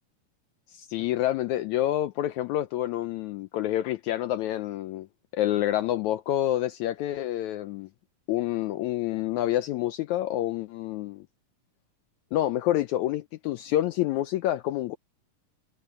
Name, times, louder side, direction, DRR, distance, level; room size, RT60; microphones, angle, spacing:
voice 1, 0.7-5.1 5.3-7.9 8.3-11.2 12.3-15.0, left 13 dB, 85° left, 1.6 m, -28 dB
omnidirectional pair, 4.0 m